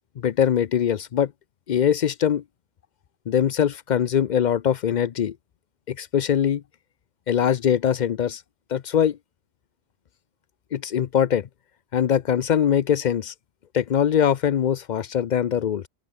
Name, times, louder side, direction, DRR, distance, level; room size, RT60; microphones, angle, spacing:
voice 1, 0.2-1.3 1.7-2.4 3.3-5.4 5.9-6.6 7.3-8.4 8.7-9.2 10.7-11.5 11.9-13.3 13.7-15.9, left 9 dB, 80° left, 0.4 m, -22 dB
open air
omnidirectional pair, 1.5 m